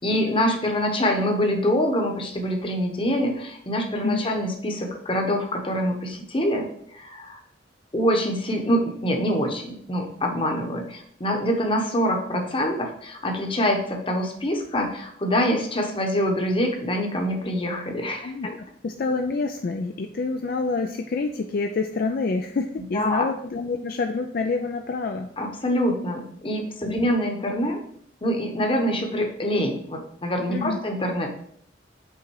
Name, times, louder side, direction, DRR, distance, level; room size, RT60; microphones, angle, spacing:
voice 1, 0.0-6.7 6.9-7.4 7.9-18.5 22.9-23.2 25.4-27.8 28.2-31.3, equal, 30° left, 2 dB, 1.0 m, -25 dB
voice 2, 18.8-25.3 26.9-27.0 30.5-30.8, left 3 dB, 50° left, 4 dB, 0.4 m, -27 dB
5.7 x 3.8 x 4.6 m, 0.66 s
head